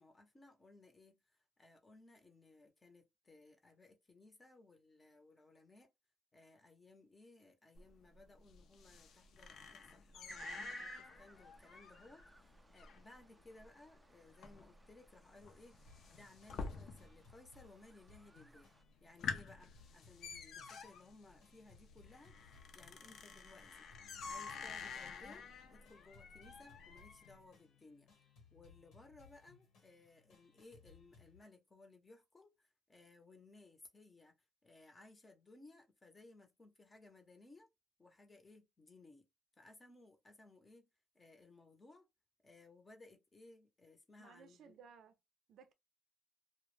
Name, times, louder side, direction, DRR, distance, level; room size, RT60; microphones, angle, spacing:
voice 1, 0.0-5.9 6.3-18.7 19.0-23.9 24.2-28.1 28.5-37.7 38.0-39.3 39.6-40.9 41.1-42.1 42.4-44.8, left 2 dB, 25° left, 0.7 m, -61 dB
sound 1, 7.8-17.3 17.6-18.2 18.6-18.7 19.0-27.3, left 5 dB, 70° left, 0.5 m, -49 dB
sound 2, 10.3-18.8, right 1 dB, 15° right, 0.3 m, -56 dB
sound 3, 15.9-31.4, left 5 dB, 85° left, 1.1 m, -65 dB
voice 2, 44.2-45.1 45.5-45.7, right 6 dB, 75° right, 0.5 m, -59 dB
2.2 x 2.1 x 3.1 m
cardioid pair, 90°, 0 cm